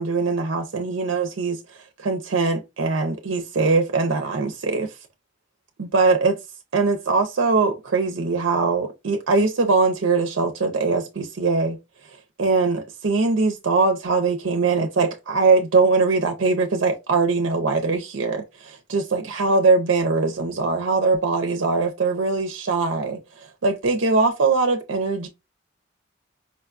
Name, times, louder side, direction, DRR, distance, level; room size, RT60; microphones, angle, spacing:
voice 1, 0.0-1.6 2.0-4.9 5.8-6.4 6.7-11.8 12.4-25.3, right 4 dB, 80° right, 0.6 m, -21 dB
5.0 x 2.2 x 2.4 m
head